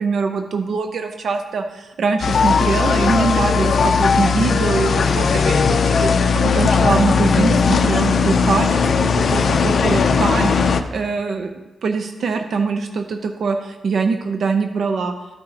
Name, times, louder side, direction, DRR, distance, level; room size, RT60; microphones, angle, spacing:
voice 1, 0.0-11.5 11.8-15.1, right 4 dB, 60° right, 6 dB, 0.5 m, -23 dB
sound 1, 2.2-10.8, left 5 dB, 50° left, 0.5 m, -17 dB
13.5 x 6.6 x 2.8 m, 1.2 s
wide cardioid pair, 145°, 0 cm